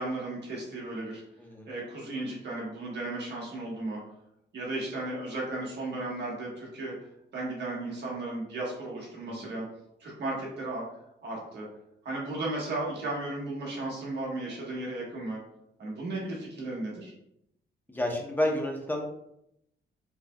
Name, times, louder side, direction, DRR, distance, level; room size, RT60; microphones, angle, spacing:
voice 1, 0.0-1.2 1.6-4.0 4.5-6.9 7.3-9.6 10.0-10.8 11.2-11.7 12.0-15.4 15.8-17.1, right 2 dB, 65° right, -4 dB, 1.5 m, -35 dB
voice 2, 17.9-19.0, left 1 dB, 10° left, 0 dB, 0.9 m, -30 dB
6.2 x 3.1 x 2.3 m, 0.78 s
cardioid pair, 130°, 19 cm